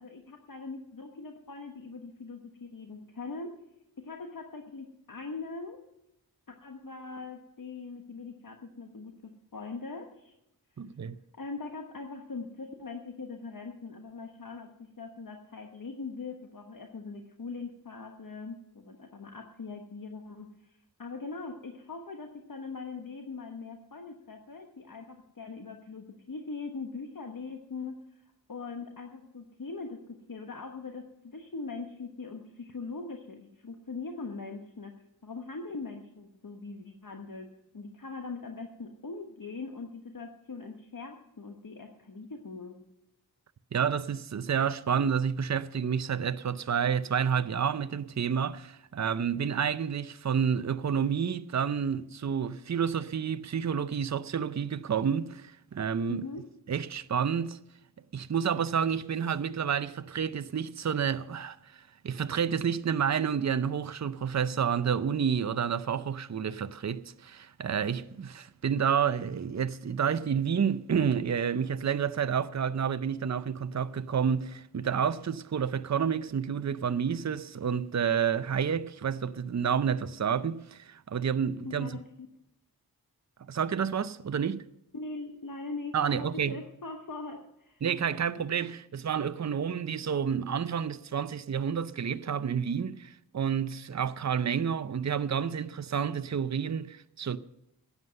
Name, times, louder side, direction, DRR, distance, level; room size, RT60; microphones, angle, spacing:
voice 1, 0.0-3.5 4.0-5.8 6.5-10.3 11.3-34.9 35.2-42.8 56.1-56.5 81.6-82.1 84.9-87.8, left 4 dB, 60° left, 1.3 m, -41 dB
voice 2, 10.8-11.2 43.7-56.2 56.7-57.6 58.1-81.9 83.5-84.6 85.9-86.5 87.8-97.4, right 7 dB, 45° right, 0.6 m, -29 dB
13.5 x 9.6 x 6.4 m
wide cardioid pair, 55°, 38 cm